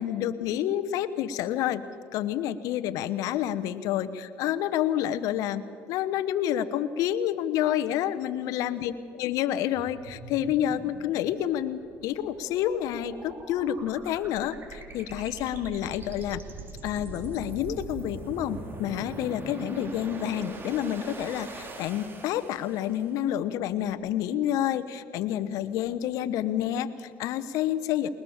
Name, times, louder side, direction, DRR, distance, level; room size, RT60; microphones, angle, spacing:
voice 1, 0.0-1.8 2.1-5.6 5.9-16.4 16.8-28.1, left 11 dB, 75° left, 13 dB, 1.0 m, -29 dB
sound 1, 9.7-23.1, right 3 dB, 40° right, 3.2 m, -42 dB
20.5 x 20.5 x 7.2 m, 2.6 s
supercardioid pair, 85°, 6 cm